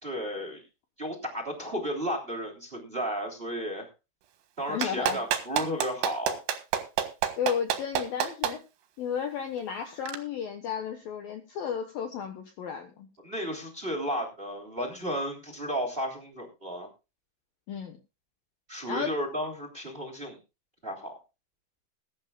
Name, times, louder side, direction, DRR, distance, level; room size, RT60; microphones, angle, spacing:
voice 1, 0.0-0.6 1.0-3.9 4.6-6.4 13.2-16.9 18.7-20.4 20.8-21.1, equal, 15° right, 1 dB, 2.3 m, -33 dB
voice 2, 4.7-5.2 7.4-8.6 9.0-13.1 17.7-18.0 18.9-19.1, left 8 dB, 85° left, 6 dB, 2.0 m, -33 dB
Clapping, 4.8-8.5 10.1-10.2, right 10 dB, 65° right, 3.3 m, -27 dB
21.0 x 11.5 x 2.4 m, 0.29 s
omnidirectional pair, 6.0 m